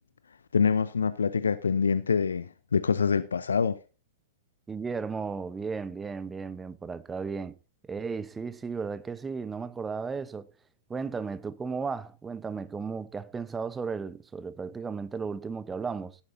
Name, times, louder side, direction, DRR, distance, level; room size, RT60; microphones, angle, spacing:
voice 1, 0.5-3.8, left 6 dB, 70° left, 0.7 m, -25 dB
voice 2, 4.7-7.6 7.9-10.5 10.9-16.2, right 5 dB, 15° right, 0.9 m, -35 dB
16.0 x 11.5 x 2.7 m
figure-of-eight pair, 100°, 0 cm